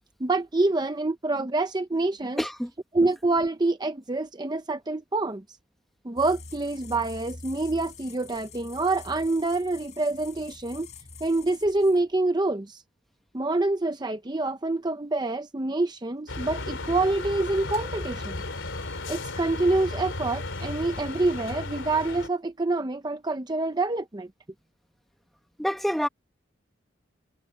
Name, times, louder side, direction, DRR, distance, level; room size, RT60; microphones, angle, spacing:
voice 1, 0.2-2.4 2.9-5.4 6.0-10.9 11.2-12.8 13.3-18.4 19.1-24.3, right 2 dB, 20° right, 0.7 m, -26 dB
voice 2, 2.4-2.7 25.6-26.1, equal, ahead, 1.1 m, -27 dB
sound 1, 6.2-12.2, left 3 dB, 40° left, 4.4 m, -45 dB
sound 2, 16.3-22.3, left 2 dB, 85° left, 3.0 m, -34 dB
head